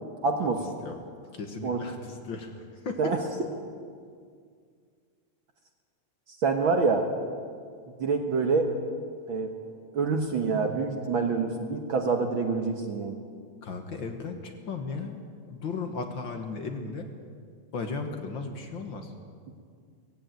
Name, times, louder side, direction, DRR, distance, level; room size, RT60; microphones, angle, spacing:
voice 1, 0.2-0.6 1.6-1.8 3.0-3.2 6.4-7.1 8.0-8.7 9.3-9.5 9.9-13.2, right 4 dB, 55° right, 4 dB, 1.6 m, -26 dB
voice 2, 1.3-3.1 13.6-15.2 15.5-17.1 17.7-19.1, left 4 dB, 50° left, 5 dB, 1.7 m, -36 dB
18.0 x 16.0 x 9.2 m, 2.2 s
omnidirectional pair, 3.3 m